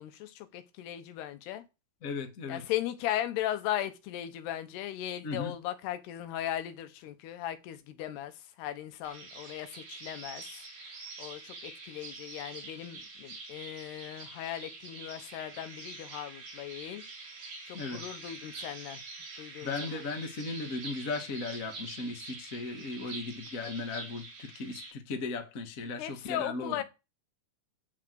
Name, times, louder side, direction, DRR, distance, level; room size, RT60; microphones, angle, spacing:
voice 1, 0.0-1.6 2.5-10.5 11.2-17.0 17.7-19.0 19.4-20.0 26.0-26.8, left 12 dB, 90° left, 3.2 m, -37 dB
voice 2, 2.0-2.6 5.2-5.5 17.7-18.0 19.6-26.7, left 3 dB, 65° left, 0.8 m, -37 dB
sound 1, 9.0-24.9, right 3 dB, 65° right, 5.9 m, -45 dB
10.0 x 5.0 x 7.7 m
omnidirectional pair, 4.5 m